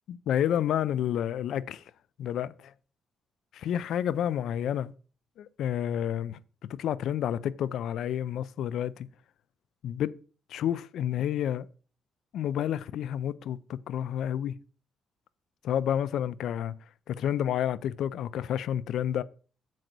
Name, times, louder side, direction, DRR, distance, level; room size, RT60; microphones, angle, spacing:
voice 1, 0.1-1.8 2.2-2.5 3.5-4.9 5.4-6.4 6.7-9.1 9.8-10.1 10.5-11.7 12.3-14.6 15.6-16.7 17.1-19.2, left 10 dB, 75° left, 0.5 m, -30 dB
7.7 x 5.3 x 6.0 m
cardioid pair, 90°, 0 cm